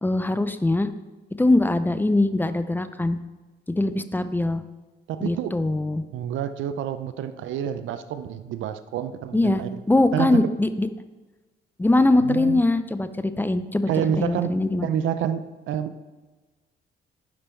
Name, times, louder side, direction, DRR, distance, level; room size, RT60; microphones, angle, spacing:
voice 1, 0.0-0.9 1.4-3.2 3.7-4.6 5.2-6.0 9.3-9.6 9.9-10.9 11.8-13.9 14.2-14.9, left 2 dB, 10° left, 12 dB, 0.5 m, -22 dB
voice 2, 5.1-5.5 6.1-9.7 10.1-10.5 12.2-12.6 13.9-14.5 14.8-16.0, right 9 dB, 75° right, 11 dB, 0.5 m, -28 dB
9.7 x 5.3 x 4.4 m, 1.2 s
cardioid pair, 90°, 20 cm